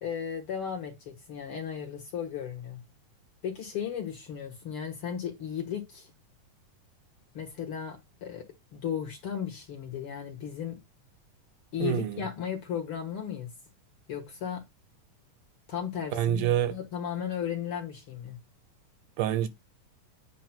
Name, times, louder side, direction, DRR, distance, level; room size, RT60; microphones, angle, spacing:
voice 1, 0.0-2.8 3.4-6.1 7.3-8.4 8.7-10.8 11.7-13.5 14.1-14.6 15.7-18.4, left 8 dB, 50° left, 1.9 m, -35 dB
voice 2, 11.8-12.2 16.1-16.7 19.2-19.5, right 11 dB, 80° right, 2.0 m, -26 dB
8.9 x 3.1 x 5.8 m
omnidirectional pair, 3.8 m